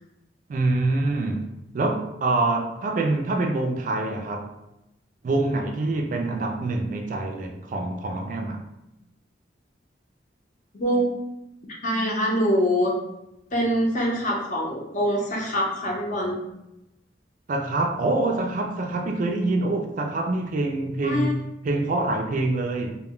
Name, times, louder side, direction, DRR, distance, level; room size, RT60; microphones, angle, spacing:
voice 1, 0.5-4.5 5.2-8.7 17.5-23.0, right 2 dB, 45° right, 0.3 m, -25 dB
voice 2, 10.7-11.1 11.8-13.0 13.5-16.4 21.0-21.3, equal, 45° left, 0.7 m, -24 dB
2.1 x 2.1 x 3.6 m
head